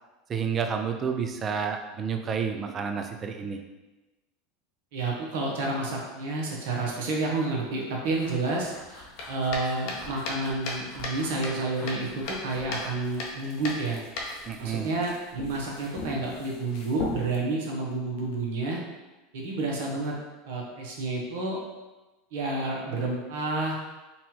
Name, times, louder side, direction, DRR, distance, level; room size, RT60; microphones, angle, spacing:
voice 1, 0.3-3.6 14.5-14.9, right 6 dB, 35° right, 5 dB, 0.4 m, -30 dB
voice 2, 4.9-14.0 14.6-18.8 19.3-20.1 20.5-21.6 22.3-23.8, right 2 dB, 70° right, -2 dB, 0.8 m, -30 dB
sound 1, 8.0-17.4, left 2 dB, 60° left, 0.7 m, -38 dB
4.1 x 2.3 x 2.8 m, 1.1 s
hypercardioid pair, 90°, 0 cm